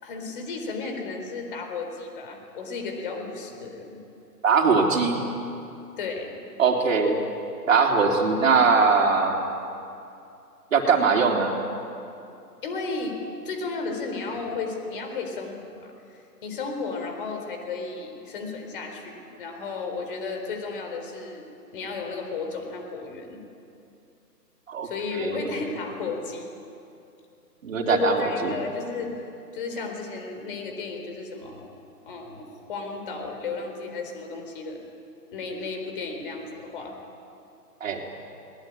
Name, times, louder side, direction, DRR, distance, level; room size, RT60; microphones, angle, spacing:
voice 1, 0.0-4.0 6.0-6.3 12.6-13.2 13.4-21.5 21.7-23.4 24.8-26.5 27.9-29.1 29.5-31.7 32.1-34.8 35.3-37.0, left 4 dB, 30° left, 4 dB, 4.0 m, -33 dB
voice 2, 4.4-5.2 6.6-7.2 7.7-9.4 10.7-11.6 24.7-25.5 27.6-28.6 37.8-38.0, right 5 dB, 55° right, 1 dB, 3.7 m, -21 dB
22.0 x 20.0 x 9.8 m, 2.6 s
hypercardioid pair, 160°, 49 cm